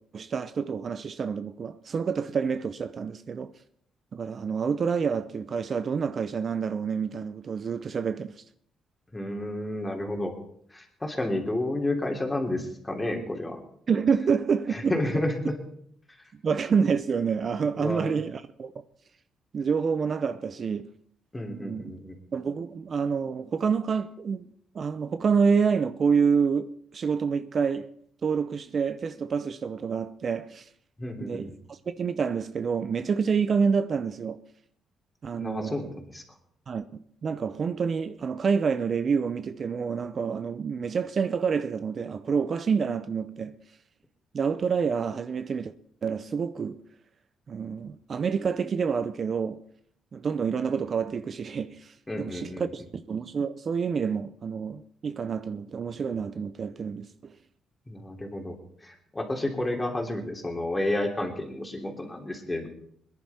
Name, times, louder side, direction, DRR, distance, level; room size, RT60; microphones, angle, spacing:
voice 1, 0.1-3.5 4.1-8.4 13.9-15.0 16.3-18.8 19.5-20.9 21.5-21.9 22.3-24.5 24.7-27.9 28.2-30.7 31.2-34.4 35.2-35.9 36.7-43.6 44.3-45.7 46.0-46.8 47.5-49.6 50.1-57.4, right 6 dB, 45° right, 0.6 m, -28 dB
voice 2, 9.1-10.4 10.7-13.6 14.7-15.5 17.8-18.2 21.3-22.1 31.0-31.4 35.4-35.9 36.1-36.2 52.1-52.7 57.9-58.6 58.8-62.7, left 1 dB, 15° left, 3.1 m, -31 dB
21.0 x 10.5 x 4.3 m
cardioid pair, 90°, 0 cm